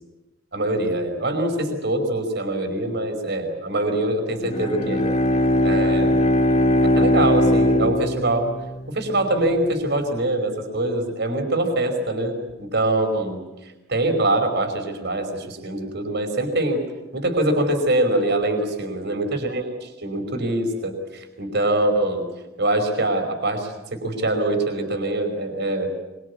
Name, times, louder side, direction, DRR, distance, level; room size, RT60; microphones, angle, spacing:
voice 1, 0.5-5.0 5.6-6.2 7.0-8.5 8.9-13.4 13.9-16.8 17.1-22.2 22.6-25.9, right 1 dB, 50° right, 5 dB, 5.1 m, -23 dB
Bowed string instrument, 4.4-9.2, left 1 dB, 30° left, 1.8 m, -20 dB
24.5 x 24.0 x 8.4 m, 1.0 s
head